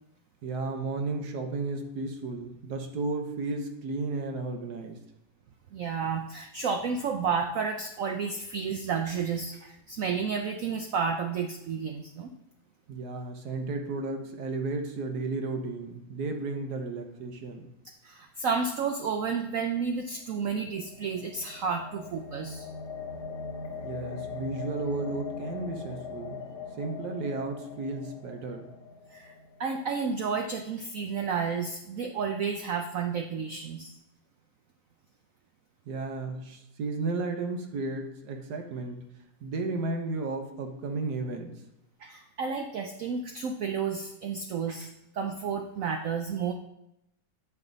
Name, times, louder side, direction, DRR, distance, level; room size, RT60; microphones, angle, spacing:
voice 1, 0.4-5.0 12.9-17.7 23.8-26.5 26.8-28.7 35.9-39.0 39.4-41.5, right 3 dB, 60° right, 4 dB, 1.4 m, -33 dB
voice 2, 5.7-12.3 18.0-22.7 29.1-29.3 29.6-33.9 42.0-44.9 45.1-46.5, right 5 dB, 75° right, 4 dB, 0.7 m, -31 dB
sound 1, 20.1-30.3, left 5 dB, 65° left, 1.5 m, -41 dB
8.2 x 5.6 x 3.9 m, 0.83 s
omnidirectional pair, 2.1 m